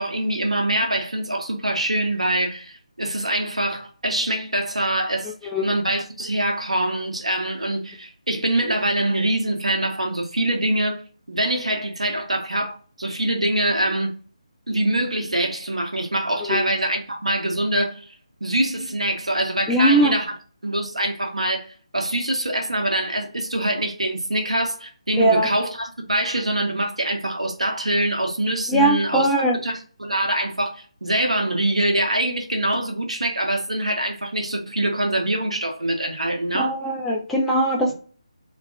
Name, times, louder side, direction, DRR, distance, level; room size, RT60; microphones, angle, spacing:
voice 1, 0.0-14.1 14.7-18.1 18.4-20.3 20.6-36.7, right 1 dB, 80° right, 0.7 m, -24 dB
voice 2, 19.7-20.1 25.2-25.5 28.7-29.6 36.5-37.9, right 1 dB, 5° left, 0.3 m, -20 dB
2.6 x 2.3 x 2.3 m
figure-of-eight pair, 150°, 3 cm